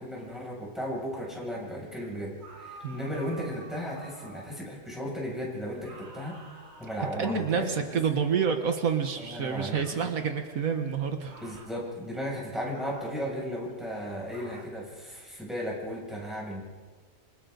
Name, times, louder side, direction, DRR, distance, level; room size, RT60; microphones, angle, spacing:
voice 1, 0.0-8.0 9.2-10.1 11.4-16.6, equal, ahead, -4 dB, 7.0 m, -35 dB
sound 1, 2.4-4.7 5.8-8.1 9.7-10.1 11.3-11.8 12.7-13.3 14.3-14.8, right 2 dB, 50° right, 2.1 m, -50 dB
voice 2, 7.2-11.4, right 6 dB, 85° right, 5 dB, 1.8 m, -28 dB
27.5 x 25.0 x 4.0 m, 1.4 s
omnidirectional pair, 1.4 m